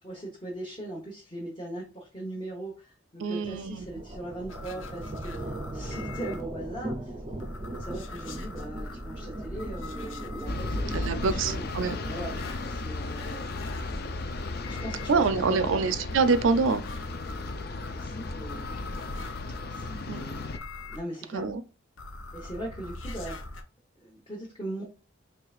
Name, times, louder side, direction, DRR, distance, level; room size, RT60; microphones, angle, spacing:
voice 1, 0.0-7.1 7.8-11.7 12.0-13.4 14.6-15.8 17.9-18.9 19.7-20.6 20.9-21.5 22.3-23.3 24.0-24.8, right 1 dB, 25° left, 1.0 m, -40 dB
voice 2, 3.2-3.8 10.9-12.0 15.1-16.8 20.1-20.2 21.3-21.6, right 4 dB, 85° right, 0.5 m, -25 dB
sound 1, 3.5-12.5, right 1 dB, 25° right, 0.5 m, -38 dB
sound 2, 4.5-6.4 7.4-15.1 16.1-21.0 22.0-23.6, left 2 dB, 90° left, 0.7 m, -42 dB
sound 3, 10.5-20.6, left 3 dB, 50° left, 0.4 m, -35 dB
4.8 x 3.3 x 2.4 m
head